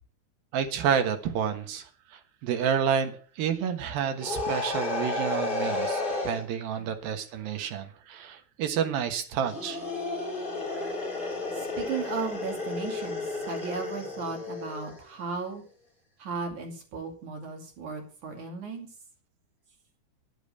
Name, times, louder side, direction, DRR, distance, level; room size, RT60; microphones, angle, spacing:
voice 1, 0.5-9.8, right 8 dB, 80° right, 6 dB, 3.2 m, -29 dB
sound 1, 4.2-6.4 9.4-15.0, left 3 dB, 15° left, 3.3 m, -32 dB
voice 2, 11.6-15.6 16.2-18.9, right 4 dB, 60° right, 2 dB, 3.8 m, -36 dB
10.0 x 9.0 x 6.7 m, 0.42 s
omnidirectional pair, 4.1 m